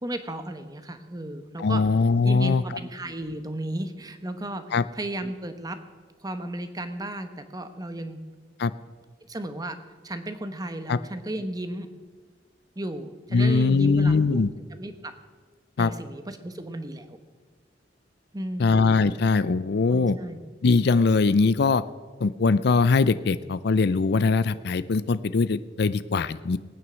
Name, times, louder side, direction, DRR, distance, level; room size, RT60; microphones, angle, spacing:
voice 1, 0.0-1.8 2.2-4.6 4.9-5.8 6.2-8.2 9.2-9.8 10.0-11.9 12.8-14.4 14.7-15.1 15.8-17.2 18.3-18.9 19.9-20.4, right 1 dB, 20° right, 9 dB, 1.0 m, -34 dB
voice 2, 1.6-2.6 4.7-4.8 8.6-8.7 10.9-11.0 13.3-14.5 15.8-15.9 18.6-20.2 20.6-21.8 22.2-26.6, left 4 dB, 65° left, 15 dB, 0.5 m, -21 dB
19.0 x 9.3 x 6.2 m, 1.4 s
head